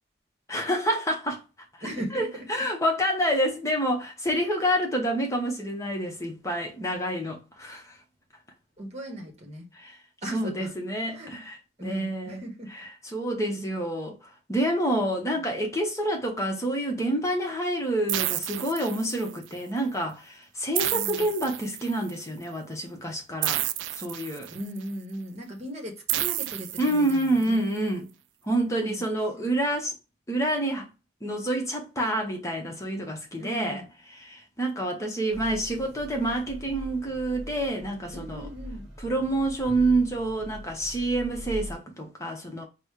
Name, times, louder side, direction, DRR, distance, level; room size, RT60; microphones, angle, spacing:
voice 1, 0.5-1.4 2.1-8.0 9.7-10.0 10.3-12.4 12.7-12.8 13.1-23.6 23.9-24.5 26.8-28.1 28.4-29.9 30.3-30.9 31.2-33.8 34.1-38.5 39.0-42.6, right 1 dB, 15° left, 0.9 m, -28 dB
voice 2, 1.8-2.7 8.8-9.7 10.2-10.7 11.1-11.3 11.8-12.7 15.3-15.4 20.9-21.3 24.5-27.6 28.6-29.0 29.3-29.5 33.4-33.9 38.1-38.8, equal, 35° right, 1.1 m, -38 dB
sound 1, 18.1-19.4 20.7-22.1 23.4-24.8 26.1-27.4, right 14 dB, 85° right, 0.3 m, -30 dB
sound 2, 35.3-41.7, equal, ahead, 1.5 m, -41 dB
4.1 x 2.1 x 4.5 m
head